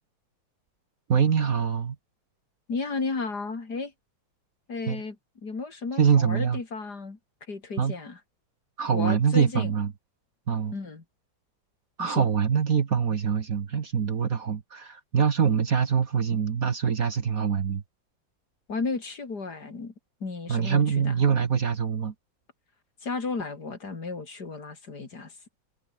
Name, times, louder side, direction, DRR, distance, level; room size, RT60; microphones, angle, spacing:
voice 1, 1.1-1.9 4.9-5.0 6.0-6.6 7.8-7.9 8.8-9.9 10.5-10.8 12.0-17.8 20.5-22.1, right 7 dB, 50° right, 1.7 m, -24 dB
voice 2, 2.7-3.9 4.7-7.2 7.5-8.2 8.9-9.7 10.7-11.0 12.0-12.3 18.7-19.9 20.2-21.2 23.0-25.4, left 4 dB, 55° left, 3.8 m, -33 dB
omnidirectional pair, 2.2 m